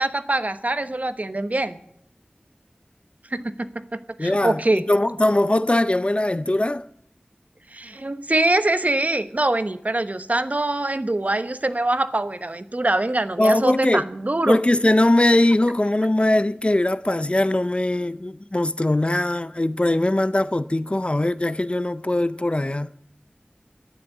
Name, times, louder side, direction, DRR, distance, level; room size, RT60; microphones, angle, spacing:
voice 1, 0.0-1.8 3.3-4.8 7.7-14.6, right 2 dB, 45° right, 1.0 m, -24 dB
voice 2, 4.2-6.9 13.4-14.0 14.5-22.9, left 1 dB, 35° left, 0.5 m, -21 dB
12.0 x 10.0 x 9.2 m
wide cardioid pair, 50°, 3 cm